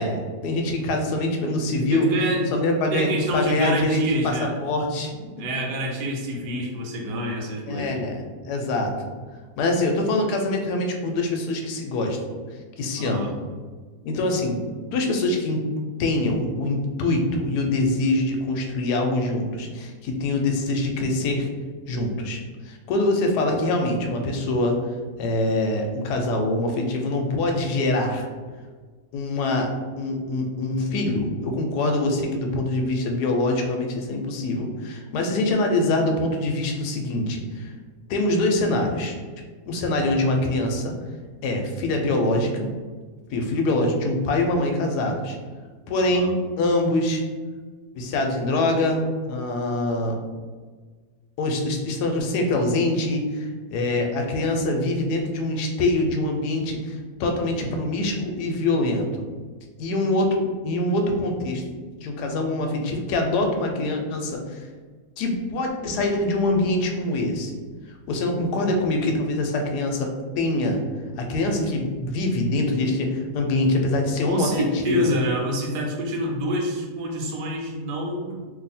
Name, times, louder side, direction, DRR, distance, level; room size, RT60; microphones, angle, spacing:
voice 1, 0.0-2.1 2.5-5.2 7.7-9.1 9.6-12.2 12.8-13.3 14.0-14.6 14.9-15.7 16.0-21.5 21.9-24.8 25.2-28.3 29.1-37.7 38.1-39.2 39.7-40.9 41.4-42.7 43.3-45.4 45.9-47.2 47.9-50.2 51.4-59.2 59.8-61.6 62.0-64.6 65.2-67.5 68.1-70.8 71.2-75.0, left 2 dB, 85° left, 3 dB, 1.2 m, -24 dB
voice 2, 1.9-2.5 2.9-4.5 5.4-7.9 13.0-13.3 46.0-46.3 74.3-78.4, equal, 85° right, 0 dB, 1.3 m, -27 dB
2.7 x 2.7 x 4.1 m, 1.4 s
omnidirectional pair, 1.7 m